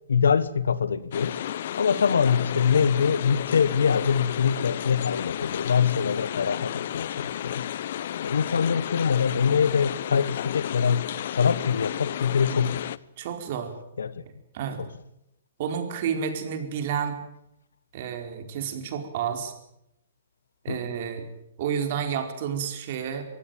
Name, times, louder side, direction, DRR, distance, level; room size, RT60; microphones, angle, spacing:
voice 1, 0.1-1.4 1.8-7.7 8.2-12.8 14.0-14.2 20.7-20.9, left 6 dB, 85° left, 1.3 m, -24 dB
sound 1, 1.1-13.0, left 11 dB, 60° left, 0.7 m, -32 dB
voice 2, 13.2-13.7 14.5-14.8 15.6-17.2 17.9-19.5 20.6-21.3 21.6-23.3, right 7 dB, 50° right, 4.5 m, -30 dB
24.0 x 15.5 x 9.2 m
hypercardioid pair, 135°, 0 cm